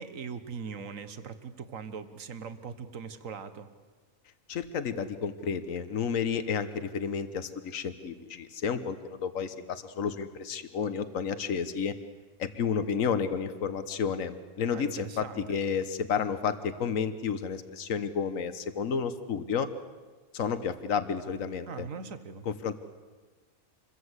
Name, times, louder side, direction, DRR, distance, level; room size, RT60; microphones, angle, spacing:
voice 1, 0.0-3.7 14.7-15.6 21.7-22.5, right 6 dB, 75° right, 10 dB, 1.7 m, -41 dB
voice 2, 4.5-11.9 12.4-19.7 20.3-21.9 22.5-22.8, left 6 dB, 75° left, 11 dB, 1.5 m, -31 dB
27.0 x 22.0 x 8.1 m, 1.3 s
omnidirectional pair, 1.4 m